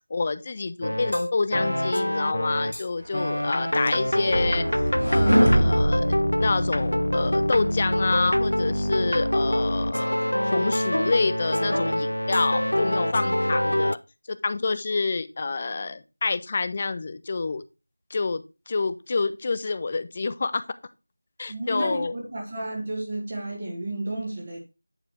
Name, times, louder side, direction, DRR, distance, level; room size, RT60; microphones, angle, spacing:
voice 1, 0.1-4.7 5.0-14.0 14.3-17.6 18.1-20.6 21.4-22.2, left 4 dB, 20° left, 0.4 m, -28 dB
sound 1, 0.8-2.9 3.1-14.0, equal, 80° left, 0.5 m, -25 dB
sound 2, 3.3-6.9, right 1 dB, 50° right, 1.6 m, -23 dB
voice 2, 21.5-24.6, right 1 dB, 25° right, 1.6 m, -32 dB
9.4 x 4.9 x 3.2 m
figure-of-eight pair, 170°, 0 cm